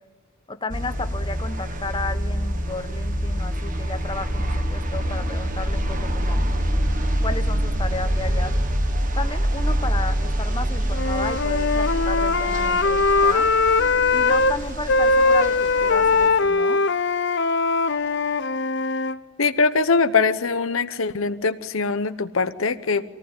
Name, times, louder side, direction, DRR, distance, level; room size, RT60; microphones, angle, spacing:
voice 1, 0.5-6.4 7.2-8.5 9.1-13.5 14.1-16.8, left 3 dB, 25° left, 8 dB, 1.2 m, -33 dB
sound 1, 0.7-16.3, equal, 40° right, 1.7 m, -25 dB
Wind instrument woodwind instrument, 10.9-14.5 14.9-19.2, left 3 dB, 55° left, 0.7 m, -20 dB
voice 2, 19.4-23.0, left 4 dB, 80° left, 11 dB, 1.0 m, -22 dB
25.0 x 18.5 x 9.8 m, 1.3 s
head